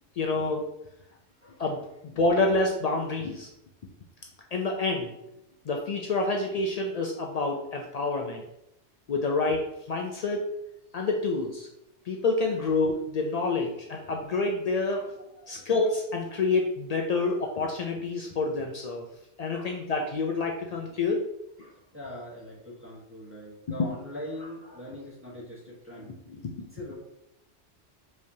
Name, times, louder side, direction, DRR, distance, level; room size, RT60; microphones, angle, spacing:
voice 1, 0.2-0.7 1.6-3.5 4.5-5.1 5.7-8.4 9.1-9.6 9.9-10.5 10.9-11.7 12.1-15.0 15.5-19.1 19.4-21.2 26.4-26.5, left 3 dB, 85° left, 1 dB, 0.3 m, -28 dB
voice 2, 15.4-15.7 17.1-17.5 17.8-18.0 19.5-20.0 21.6-26.2 26.6-26.9, left 1 dB, 10° right, -4 dB, 1.0 m, -43 dB
4.7 x 3.2 x 2.7 m, 0.83 s
omnidirectional pair, 1.2 m